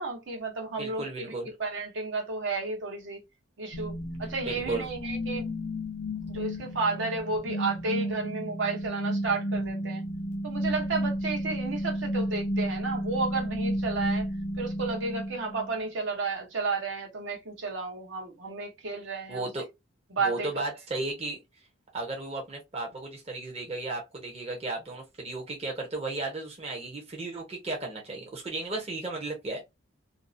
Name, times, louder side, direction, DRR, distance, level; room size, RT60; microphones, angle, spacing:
voice 1, 0.0-1.3 1.6-3.2 3.6-3.9 4.2-5.4 6.3-10.0 10.4-14.3 14.5-19.5 20.1-20.5, right 4 dB, 70° right, 0.8 m, -32 dB
voice 2, 0.8-1.5 4.5-4.9 19.3-19.7 20.2-21.4 21.9-29.6, right 2 dB, 30° right, 0.7 m, -34 dB
sound 1, 3.7-15.7, equal, 35° left, 0.4 m, -32 dB
2.6 x 2.0 x 2.5 m
head